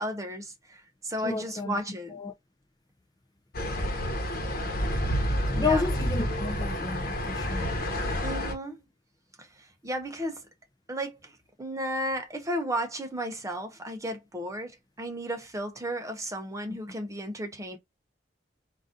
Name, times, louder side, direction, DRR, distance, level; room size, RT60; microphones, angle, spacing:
voice 1, 0.0-2.2 5.5-5.9 8.2-8.8 9.4-10.4 10.9-17.8, equal, 20° right, 0.8 m, -34 dB
voice 2, 1.2-1.8 2.1-2.3 5.6-7.7, left 4 dB, 20° left, 0.5 m, -31 dB
sound 1, 3.5-8.5, equal, 55° left, 1.1 m, -29 dB
3.9 x 2.6 x 3.7 m
head